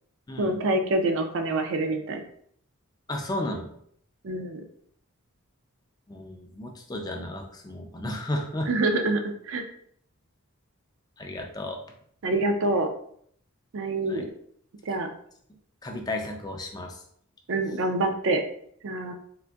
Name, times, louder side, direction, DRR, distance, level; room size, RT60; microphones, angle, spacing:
voice 1, 0.4-2.2 4.2-4.6 8.7-9.6 12.2-12.9 13.7-14.3 14.8-15.1 17.5-18.4 18.8-19.1, right 2 dB, 60° right, 5 dB, 0.4 m, -26 dB
voice 2, 3.1-3.7 6.1-8.7 11.2-11.8 14.1-14.2 15.8-17.0, left 1 dB, 20° left, 2 dB, 0.3 m, -33 dB
3.7 x 2.5 x 2.3 m, 0.65 s
head